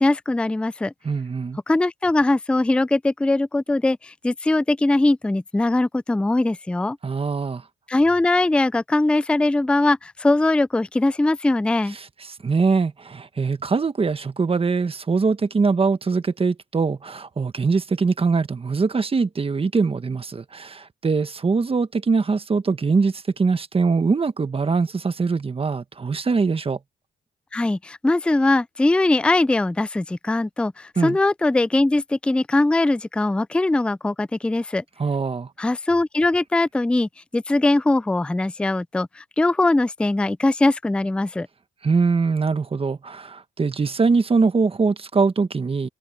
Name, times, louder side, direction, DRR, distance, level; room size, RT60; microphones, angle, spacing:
voice 1, 0.0-0.9 1.7-7.0 7.9-12.0 27.5-34.8 35.6-41.5, left 2 dB, 5° left, 0.4 m, -21 dB
voice 2, 1.0-1.6 7.0-7.6 11.9-26.8 31.0-31.2 35.0-35.5 41.8-45.9, right 4 dB, 30° right, 1.4 m, -22 dB
cardioid pair, 90°, 20 cm